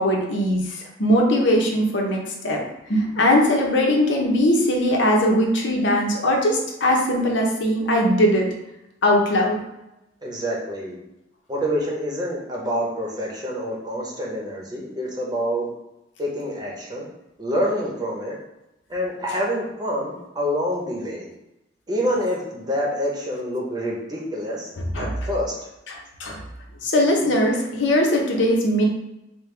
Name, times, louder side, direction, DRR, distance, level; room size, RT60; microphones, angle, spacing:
voice 1, 0.0-2.6 2.9-8.5 9.0-9.6 24.9-25.1 25.9-26.4 26.8-28.9, equal, 75° left, 0 dB, 0.8 m, -20 dB
voice 2, 10.2-11.0 11.5-15.7 16.2-17.1 17.4-18.4 18.9-21.3 21.9-24.7 25.0-25.5, equal, 20° right, -3 dB, 0.9 m, -27 dB
5.2 x 2.2 x 3.3 m, 0.91 s
head